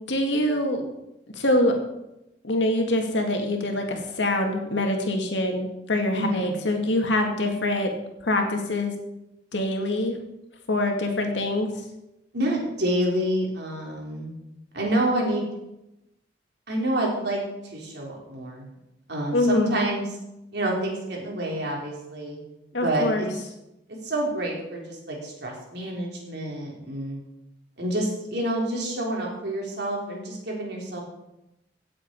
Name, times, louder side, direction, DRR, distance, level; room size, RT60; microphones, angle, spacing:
voice 1, 0.1-0.8 1.4-1.8 2.4-7.9 8.3-8.9 9.5-10.1 10.7-11.7 19.3-19.8 22.7-23.3, left 1 dB, 90° left, 3 dB, 2.2 m, -24 dB
voice 2, 6.1-6.5 12.3-14.3 14.7-15.5 16.7-17.4 17.7-18.7 19.1-20.1 20.5-22.4 22.8-23.3 23.9-27.2 27.8-31.0, right 1 dB, 65° right, -2 dB, 4.0 m, -28 dB
16.5 x 7.9 x 4.7 m, 0.91 s
head